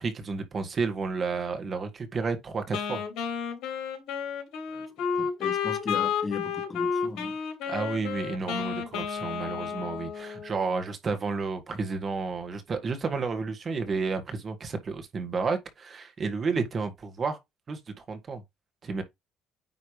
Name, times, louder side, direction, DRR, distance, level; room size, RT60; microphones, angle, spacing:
voice 1, 0.0-3.0 7.7-17.4 17.7-18.4 18.8-19.0, right 4 dB, 35° right, 1.8 m, -31 dB
Wind instrument woodwind instrument, 2.7-10.6, left 7 dB, 75° left, 3.0 m, -31 dB
voice 2, 5.1-7.4 16.5-16.6, left 3 dB, 30° left, 1.7 m, -37 dB
9.5 x 3.3 x 3.2 m
cardioid pair, 110°, 0 cm